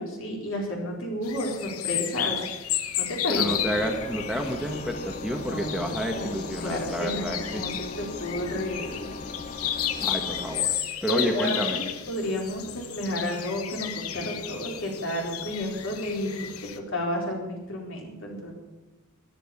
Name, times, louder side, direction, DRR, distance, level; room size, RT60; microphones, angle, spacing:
voice 1, 0.0-2.4 3.0-3.7 5.4-9.1 9.7-10.0 11.1-18.5, left 1 dB, 60° left, 0 dB, 4.4 m, -32 dB
sound 1, 1.2-16.8, left 10 dB, 80° left, 1.2 m, -33 dB
voice 2, 3.3-7.7 10.0-11.8, equal, ahead, 3 dB, 1.3 m, -30 dB
Engine, 3.4-10.6, left 3 dB, 30° left, 0.9 m, -39 dB
14.0 x 12.0 x 7.2 m, 1.2 s
head